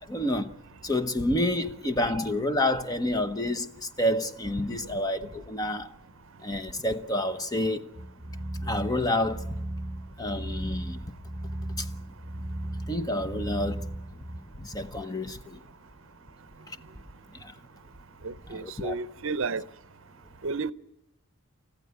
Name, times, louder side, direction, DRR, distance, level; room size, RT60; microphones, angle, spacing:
voice 1, 0.1-0.5 0.8-5.9 6.4-7.9 8.6-9.5 10.2-11.0 11.8-11.9 12.9-13.9 14.5-15.6 16.7-16.8 17.3-17.5 18.5-19.0, left 1 dB, 15° left, 1.0 m, -29 dB
sound 1, 7.9-14.4, right 1 dB, 30° right, 3.7 m, -36 dB
voice 2, 18.2-19.6 20.4-20.7, right 4 dB, 60° right, 0.7 m, -31 dB
29.5 x 14.5 x 8.3 m
head